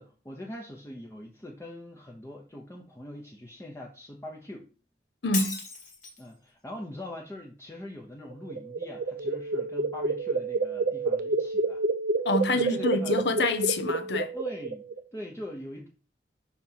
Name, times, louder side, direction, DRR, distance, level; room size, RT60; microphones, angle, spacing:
voice 1, 0.0-4.7 6.2-11.8 12.5-13.2 14.3-15.9, left 1 dB, 15° left, 0.8 m, -42 dB
voice 2, 5.2-5.6 12.2-14.3, left 2 dB, 75° left, 0.7 m, -27 dB
Shatter, 5.3-6.3, left 5 dB, 50° left, 1.4 m, -35 dB
sound 1, 8.3-15.0, right 3 dB, 50° right, 0.5 m, -29 dB
6.1 x 2.9 x 5.5 m
head